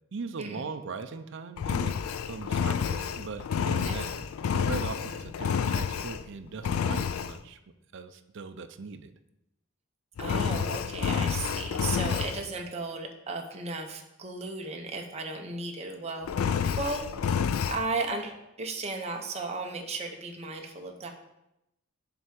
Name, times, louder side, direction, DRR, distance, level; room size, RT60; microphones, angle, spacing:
voice 1, 0.1-2.0 2.3-7.6 7.9-9.1, right 4 dB, 60° right, 8 dB, 0.5 m, -40 dB
Engine, 1.6-6.3 6.6-7.4 10.2-12.4 16.2-17.8, left 7 dB, 85° left, 0.4 m, -29 dB
voice 2, 10.2-17.0 17.7-21.1, right 3 dB, 30° right, 2 dB, 0.7 m, -35 dB
7.0 x 3.4 x 6.2 m, 0.88 s
head